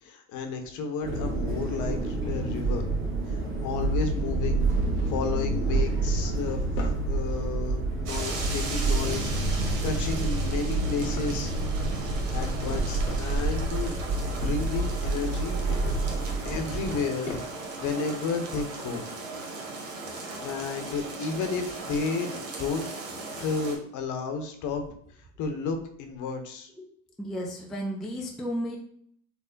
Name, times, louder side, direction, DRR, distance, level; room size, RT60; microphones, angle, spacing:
voice 1, 0.0-2.9 3.3-4.7 5.1-6.6 7.1-11.5 12.3-14.0 14.2-15.6 16.4-17.4 17.8-19.0 20.4-22.9 23.4-24.8 25.4-26.7, left 4 dB, 45° left, 5 dB, 0.7 m, -32 dB
sound 1, 1.0-16.9, right 2 dB, 30° right, 1.4 m, -28 dB
Drawer open or close, 4.6-5.6 6.0-7.1 10.7-11.8 12.2-13.3 15.5-16.2 16.6-17.8, left 3 dB, 80° left, 0.9 m, -39 dB
sound 2, 8.1-23.8, right 3 dB, 75° right, 1.0 m, -38 dB
voice 2, 27.2-28.8, equal, ahead, -1 dB, 0.3 m, -33 dB
3.4 x 2.0 x 3.8 m, 0.64 s
hypercardioid pair, 90°, 40 cm